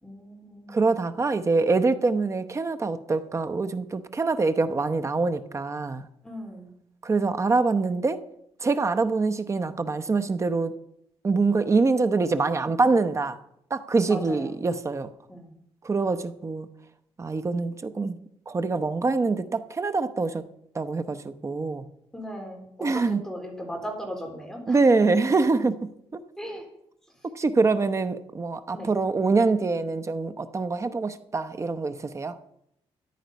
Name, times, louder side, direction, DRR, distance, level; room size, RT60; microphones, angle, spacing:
voice 1, 0.0-0.7 6.2-6.7 14.1-14.6 15.3-15.5 22.1-24.8 26.4-26.7 28.7-28.9, equal, 5° left, 2 dB, 3.6 m, -37 dB
voice 2, 0.7-6.1 7.0-8.2 8.6-10.8 11.2-13.4 13.7-15.1 15.8-16.7 17.2-18.2 18.5-20.4 20.7-21.8 22.8-23.2 24.7-25.8 27.2-32.4, right 3 dB, 30° right, 10 dB, 0.8 m, -24 dB
13.5 x 10.5 x 5.3 m, 0.76 s
cardioid pair, 115°, 10 cm